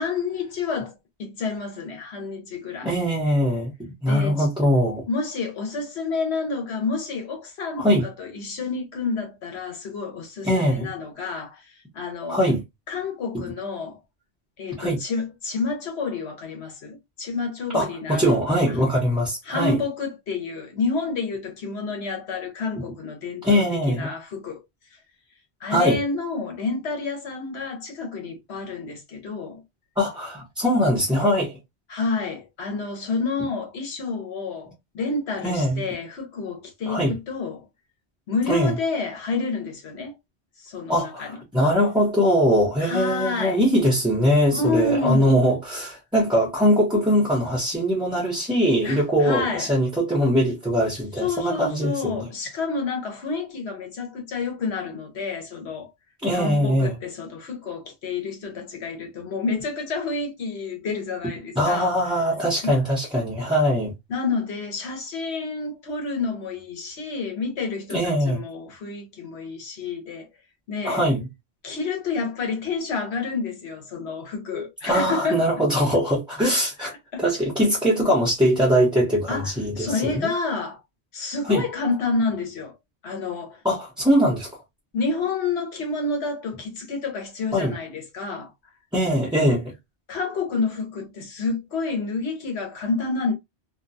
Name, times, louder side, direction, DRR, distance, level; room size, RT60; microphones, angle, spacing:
voice 1, 0.0-2.9 4.1-4.5 5.1-12.4 12.9-14.0 14.6-18.4 19.5-24.6 24.9-25.0 25.6-29.6 31.9-37.7 38.3-40.2 40.6-41.4 42.8-43.6 44.5-45.3 48.8-49.7 51.2-55.9 56.3-62.0 62.6-62.8 64.1-70.3 70.7-71.0 71.6-75.5 77.1-77.2 79.3-80.8 81.1-82.7 83.0-83.6 84.9-88.5 90.1-93.3, left 4 dB, 75° left, 1.1 m, -29 dB
voice 2, 2.8-3.7 4.0-5.0 7.8-8.0 10.4-10.9 12.3-12.6 13.3-13.4 14.8-15.0 17.7-19.8 23.4-24.1 25.7-26.0 30.0-31.6 35.4-35.8 36.9-37.1 38.5-38.7 40.9-52.2 56.2-56.9 61.6-63.9 67.9-68.4 70.8-71.3 74.5-80.3 81.4-81.6 83.6-84.5 87.5-87.7 88.9-89.7, equal, 5° right, 0.7 m, -21 dB
2.4 x 2.2 x 2.6 m
omnidirectional pair, 1.1 m